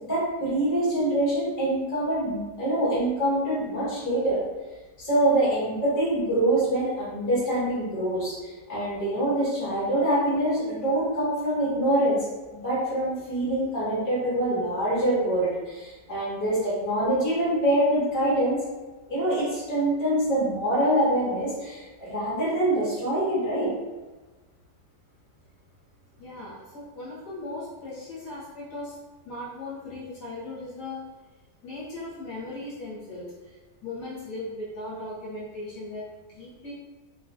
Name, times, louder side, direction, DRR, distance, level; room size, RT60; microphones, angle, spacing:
voice 1, 0.0-4.4 5.0-12.2 12.5-18.6 19.1-23.7, right 1 dB, 15° left, -9 dB, 0.7 m, -25 dB
voice 2, 26.2-29.0 29.2-31.1 31.6-33.3 33.8-36.7, left 2 dB, 65° left, -7 dB, 1.2 m, -38 dB
3.0 x 2.2 x 2.4 m, 1.2 s
omnidirectional pair, 2.1 m